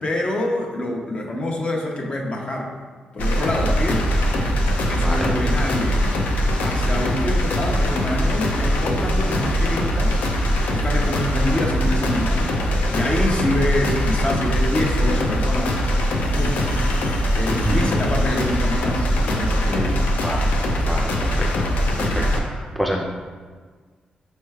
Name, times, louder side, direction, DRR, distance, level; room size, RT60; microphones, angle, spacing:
voice 1, 0.0-2.7 3.1-4.1 4.9-6.0 6.6-10.2 10.7-15.8 16.2-16.9 17.3-20.0 22.0-22.4, left 1 dB, 40° left, 0 dB, 0.7 m, -26 dB
sound 1, 3.2-22.4, equal, 80° left, 0.5 m, -21 dB
voice 2, 20.9-23.0, equal, ahead, 0 dB, 0.4 m, -27 dB
5.4 x 3.1 x 2.3 m, 1.5 s
cardioid pair, 65°, 3 cm